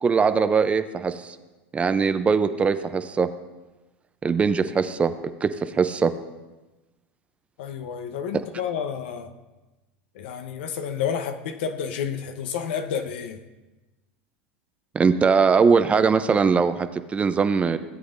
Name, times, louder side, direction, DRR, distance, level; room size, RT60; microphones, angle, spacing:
voice 1, 0.0-1.4 1.7-3.3 4.2-5.1 5.4-6.1 14.9-17.8, right 5 dB, 20° right, 11 dB, 0.6 m, -21 dB
voice 2, 7.6-9.3 10.1-13.4, left 7 dB, 75° left, 8 dB, 0.9 m, -30 dB
17.0 x 7.9 x 2.6 m, 1.1 s
hypercardioid pair, 105°, 6 cm